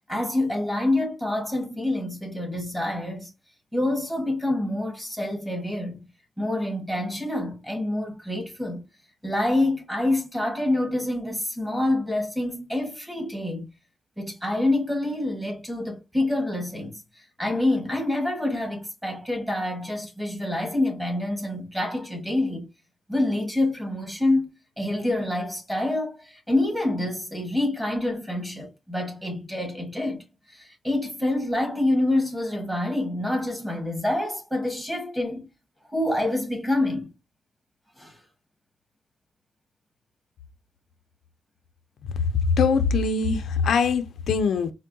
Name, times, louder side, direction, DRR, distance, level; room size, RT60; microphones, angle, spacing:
voice 1, 0.1-3.3 3.7-6.1 6.4-8.8 9.2-13.7 14.2-22.7 23.1-24.5 24.8-35.4 35.9-37.1 38.0-38.2, left 1 dB, 5° right, 1.3 m, -27 dB
voice 2, 42.6-44.7, left 5 dB, 85° left, 0.4 m, -22 dB
4.4 x 2.1 x 2.6 m
wide cardioid pair, 125°, 0 cm